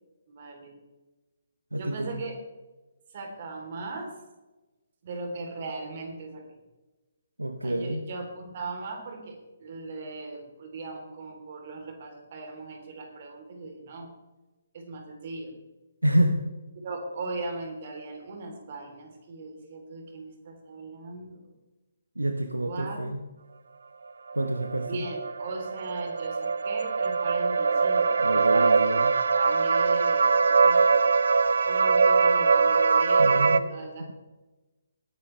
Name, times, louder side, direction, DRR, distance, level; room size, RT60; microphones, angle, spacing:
voice 1, 0.3-0.8 1.8-2.4 3.1-4.1 5.0-6.4 7.6-14.1 14.7-15.5 16.8-21.4 22.6-23.0 24.9-28.0 28.4-29.0 29.3-31.0 31.6-34.1, right 3 dB, 45° right, 2 dB, 3.4 m, -38 dB
voice 2, 1.7-2.2 7.4-8.0 16.0-16.4 22.2-23.2 24.3-25.0 28.2-29.1 33.2-33.6, right 1 dB, 85° right, 7 dB, 0.9 m, -28 dB
sound 1, 24.3-33.6, right 4 dB, 65° right, 0.6 m, -22 dB
19.5 x 10.5 x 3.3 m, 1.1 s
figure-of-eight pair, 135°, 0 cm